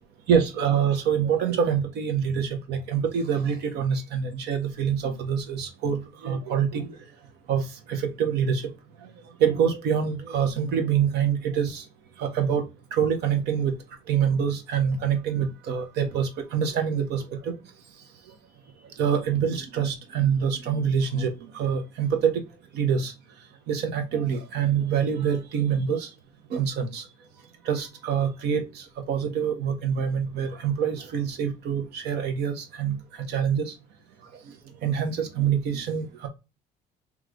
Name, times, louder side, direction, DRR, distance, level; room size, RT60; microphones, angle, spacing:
voice 1, 0.3-7.0 7.5-7.6 7.9-8.6 9.4-11.8 12.2-12.6 12.9-13.7 14.1-17.5 19.0-22.4 22.7-23.1 23.7-26.1 26.5-27.0 27.6-33.0 33.3-33.7 34.8-36.3, right 7 dB, 80° right, 1.2 m, -25 dB
3.3 x 3.2 x 3.8 m
cardioid pair, 110°, 17 cm